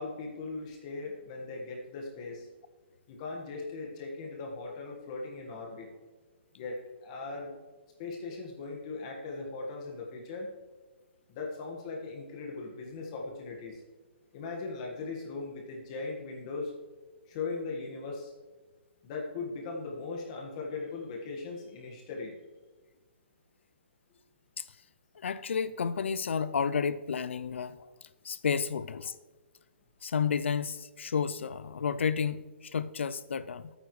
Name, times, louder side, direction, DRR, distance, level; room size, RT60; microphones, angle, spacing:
voice 1, 0.0-2.5 3.1-5.9 6.5-7.6 8.0-10.5 11.3-13.8 14.3-16.7 17.3-18.3 19.0-22.4, left 3 dB, 35° left, 1.6 m, -39 dB
voice 2, 25.2-27.8 28.2-29.2 30.0-33.7, left 6 dB, 85° left, 0.5 m, -31 dB
13.0 x 9.2 x 3.2 m
hypercardioid pair, 160°, 6 cm